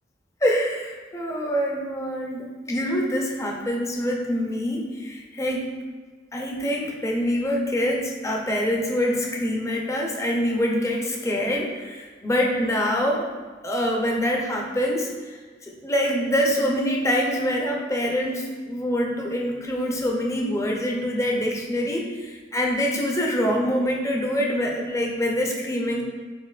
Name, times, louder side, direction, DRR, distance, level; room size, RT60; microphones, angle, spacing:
voice 1, 0.4-5.7 6.3-13.3 13.6-26.0, equal, 15° left, 0 dB, 0.5 m, -25 dB
4.2 x 4.2 x 2.4 m, 1.4 s
head